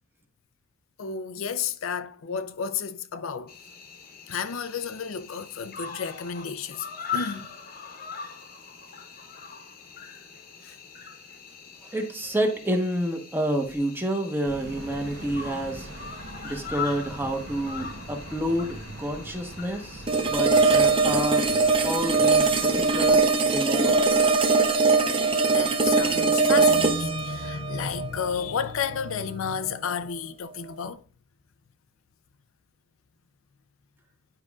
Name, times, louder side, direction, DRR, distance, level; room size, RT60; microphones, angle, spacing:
voice 1, 1.0-3.5 4.3-6.9 7.1-7.5 10.6-10.8 24.5-24.6 25.5-31.0, left 6 dB, 75° left, 0.5 m, -31 dB
Cricket, 3.5-23.4, left 6 dB, 45° left, 1.0 m, -41 dB
voice 2, 11.9-15.9 16.4-21.5 21.8-24.2, right 1 dB, 10° right, 1.0 m, -29 dB
sound 1, 14.4-23.2, right 2 dB, 60° right, 1.0 m, -42 dB
sound 2, 20.1-29.1, right 4 dB, 25° right, 0.6 m, -21 dB
10.0 x 5.0 x 2.4 m
head